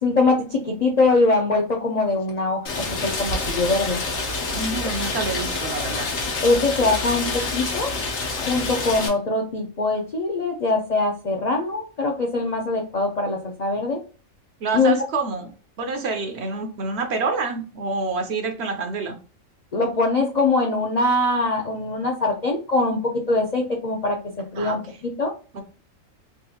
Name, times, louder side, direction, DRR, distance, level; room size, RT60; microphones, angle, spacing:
voice 1, 0.0-4.0 6.4-7.9 8.4-14.0 14.7-15.0 19.7-23.0 23.3-24.2 24.5-24.8 25.2-25.3, left 3 dB, 55° left, 0 dB, 0.4 m, -22 dB
Rain, 2.7-9.1, left 3 dB, 75° left, 1.3 m, -27 dB
voice 2, 4.5-6.1 14.6-15.5 15.8-19.2 24.5-24.8 25.5-25.6, right 3 dB, 65° right, 6 dB, 0.8 m, -27 dB
3.7 x 2.3 x 2.7 m, 0.36 s
omnidirectional pair, 1.4 m